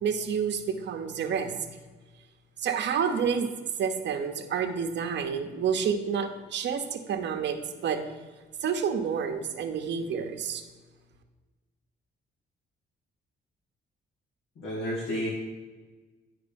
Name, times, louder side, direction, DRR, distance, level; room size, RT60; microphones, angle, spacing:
voice 1, 0.0-1.5 2.6-3.5 3.8-8.0 8.6-10.6, right 7 dB, 65° right, 5 dB, 0.9 m, -29 dB
voice 2, 14.6-15.3, equal, 80° left, -5 dB, 1.9 m, -31 dB
8.7 x 4.9 x 5.2 m, 1.3 s
cardioid pair, 90°, 20 cm